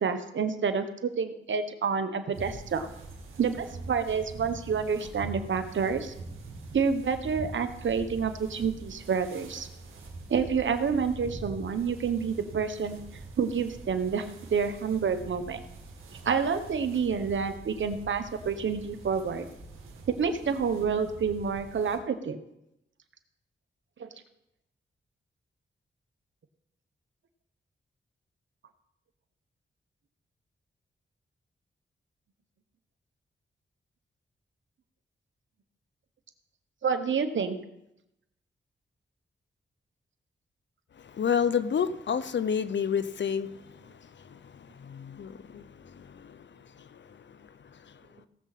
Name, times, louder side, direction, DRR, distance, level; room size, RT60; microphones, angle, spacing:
voice 1, 0.0-2.9 3.4-6.1 6.7-9.7 10.3-13.0 13.4-15.6 16.2-19.5 20.1-22.4 24.0-24.1 36.8-37.6, right 6 dB, 70° right, 9 dB, 1.2 m, -28 dB
sound 1, 2.3-22.0, right 3 dB, 90° right, 2.1 m, -44 dB
voice 2, 40.9-48.2, left 7 dB, 65° left, 14 dB, 0.8 m, -32 dB
17.5 x 7.4 x 4.2 m, 0.84 s
cardioid pair, 45°, 20 cm